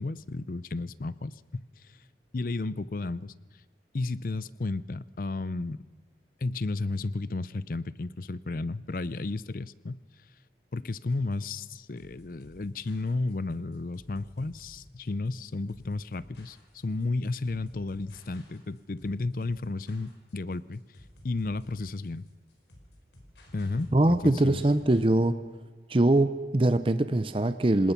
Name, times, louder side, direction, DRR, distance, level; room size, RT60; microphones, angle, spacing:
voice 1, 0.0-1.7 2.3-3.3 3.9-5.8 6.4-10.0 10.7-16.6 16.8-20.8 21.2-22.2 23.5-24.6, left 3 dB, 50° left, 18 dB, 0.5 m, -33 dB
sound 1, 11.1-25.1, left 1 dB, 85° left, 4.9 m, -54 dB
voice 2, 23.9-25.4 25.9-27.9, right 1 dB, 30° right, 11 dB, 0.6 m, -23 dB
26.5 x 19.0 x 5.9 m, 1.4 s
head